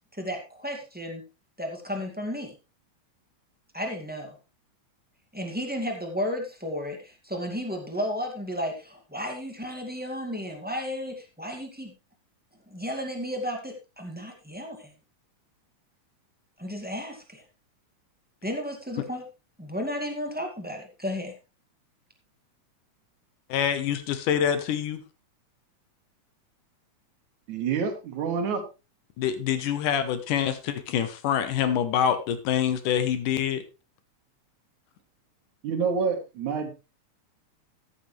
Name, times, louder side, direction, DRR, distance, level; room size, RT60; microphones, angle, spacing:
voice 1, 0.1-1.2 1.6-2.5 3.7-4.3 5.3-11.9 12.7-14.9 16.6-17.4 18.4-19.2 19.6-21.3, equal, 5° right, 2 dB, 1.4 m, -33 dB
voice 2, 23.5-25.0 29.2-33.6, left 9 dB, 80° left, 10 dB, 2.7 m, -26 dB
voice 3, 27.5-28.6 35.6-36.7, right 5 dB, 70° right, 6 dB, 2.9 m, -27 dB
14.0 x 8.7 x 3.3 m, 0.28 s
omnidirectional pair, 3.7 m